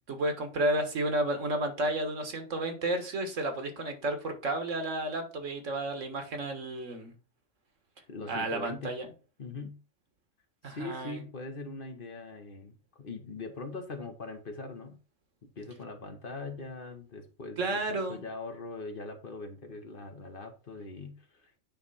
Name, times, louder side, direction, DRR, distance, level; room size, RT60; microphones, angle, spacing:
voice 1, 0.1-7.1 8.3-9.1 10.6-11.2 17.6-18.2, right 1 dB, 80° right, 1.7 m, -32 dB
voice 2, 8.1-8.9 9.4-9.8 10.6-15.0 15.4-21.6, left 3 dB, 45° left, 1.2 m, -41 dB
9.0 x 3.3 x 5.5 m
omnidirectional pair, 1.3 m